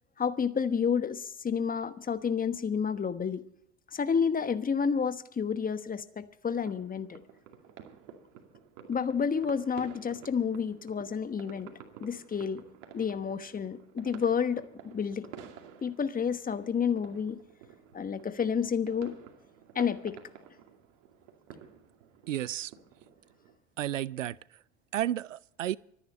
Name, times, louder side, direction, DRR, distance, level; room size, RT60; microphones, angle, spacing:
voice 1, 0.2-3.4 3.9-7.2 8.9-12.6 12.9-15.3 15.8-17.4 17.9-19.1 19.7-20.2, left 6 dB, 25° left, 1.2 m, -30 dB
sound 1, 6.6-23.5, right 8 dB, 60° right, 2.4 m, -51 dB
voice 2, 22.3-22.7 23.8-24.4 24.9-25.8, right 12 dB, 90° right, 0.5 m, -32 dB
25.0 x 10.0 x 4.2 m
hypercardioid pair, 70°, 37 cm